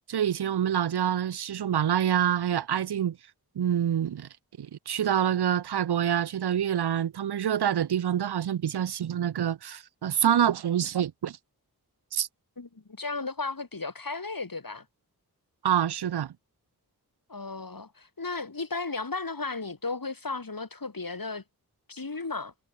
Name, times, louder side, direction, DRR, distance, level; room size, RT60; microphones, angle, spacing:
voice 1, 0.1-3.2 3.6-4.3 4.6-11.4 12.1-12.3 15.6-16.3, right 9 dB, 85° right, 0.6 m, -26 dB
voice 2, 12.6-14.9 17.3-21.4 21.9-22.5, left 3 dB, 60° left, 4.0 m, -35 dB
wide cardioid pair, 40°, 38 cm